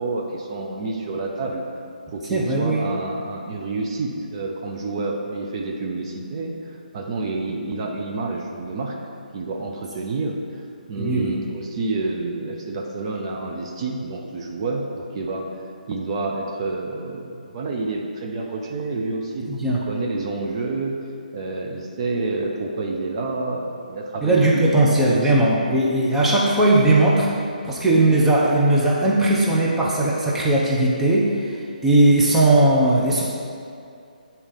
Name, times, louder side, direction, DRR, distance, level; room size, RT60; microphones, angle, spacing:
voice 1, 0.0-1.6 2.1-9.0 9.3-15.5 15.9-21.0 21.3-25.4 26.2-26.3, right 3 dB, 35° right, 0 dB, 0.8 m, -29 dB
voice 2, 2.3-2.8 11.0-11.4 19.5-19.8 24.2-27.3 27.6-31.6 31.8-33.2, right 2 dB, 5° right, -6 dB, 0.8 m, -18 dB
8.6 x 4.3 x 5.4 m, 2.4 s
figure-of-eight pair, 150°, 5 cm